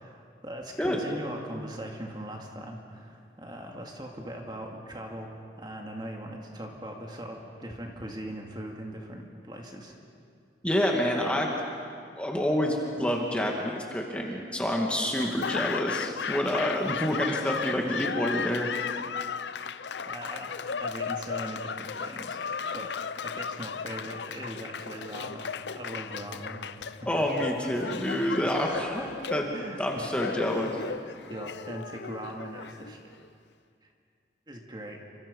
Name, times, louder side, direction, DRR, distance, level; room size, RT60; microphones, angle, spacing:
voice 1, 0.0-5.3 5.6-9.9 20.1-26.6 26.9-27.1 27.8-28.2 28.6-30.1 31.0-33.0 33.8-33.9 34.5-35.0, right 1 dB, 25° right, 1 dB, 2.3 m, -40 dB
voice 2, 10.6-11.6 12.2-18.7 27.1-29.5 29.8-30.8, equal, 5° left, 0 dB, 2.2 m, -28 dB
Laughter / Applause, 15.2-33.3, left 6 dB, 85° left, 0.6 m, -35 dB
29.0 x 26.0 x 5.5 m, 2.3 s
head